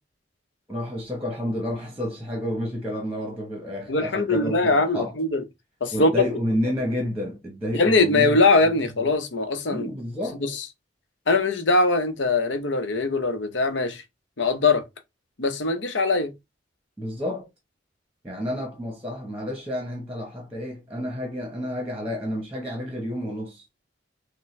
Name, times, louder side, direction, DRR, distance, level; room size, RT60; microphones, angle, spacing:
voice 1, 0.7-5.1 5.9-9.1 9.7-10.4 17.0-17.5 18.2-23.6, equal, 10° right, 1.0 m, -30 dB
voice 2, 3.9-5.4 5.8-6.1 7.7-9.9 10.4-10.7 11.3-14.0 14.4-14.8 15.4-16.3, left 3 dB, 80° left, 0.9 m, -22 dB
6.0 x 2.2 x 3.2 m
head